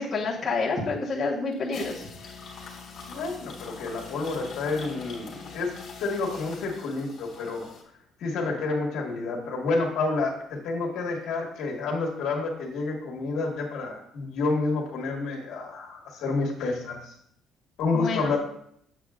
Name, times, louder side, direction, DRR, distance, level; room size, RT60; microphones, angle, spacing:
voice 1, 0.0-2.1 17.9-18.4, left 4 dB, 15° left, -8 dB, 1.2 m, -28 dB
sound 1, 1.5-7.8, left 5 dB, 35° left, 1.7 m, -43 dB
voice 2, 3.1-5.7 6.0-7.7 8.2-17.1 17.8-18.4, left 3 dB, 60° left, 0 dB, 1.6 m, -29 dB
8.3 x 6.6 x 2.4 m, 0.70 s
cardioid pair, 180°, 0 cm